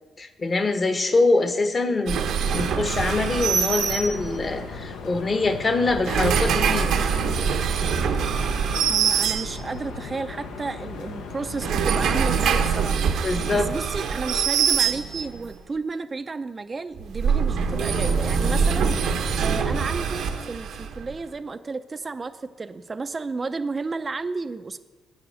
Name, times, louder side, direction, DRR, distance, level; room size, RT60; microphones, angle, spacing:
voice 1, 0.2-6.9 13.2-13.7, left 3 dB, 35° left, 9 dB, 1.0 m, -24 dB
sound 1, 2.1-4.6 5.9-9.9 11.4-15.5 17.0-21.1, right 6 dB, 75° right, 0.9 m, -24 dB
sound 2, 2.4-12.8, left 4 dB, 85° left, 0.9 m, -37 dB
voice 2, 8.9-19.1 19.4-24.8, right 4 dB, 30° right, 9 dB, 0.4 m, -32 dB
sound 3, 17.1-20.4, left 2 dB, 50° left, 1.6 m, -35 dB
9.1 x 7.8 x 6.3 m, 1.3 s
cardioid pair, 90°, 0 cm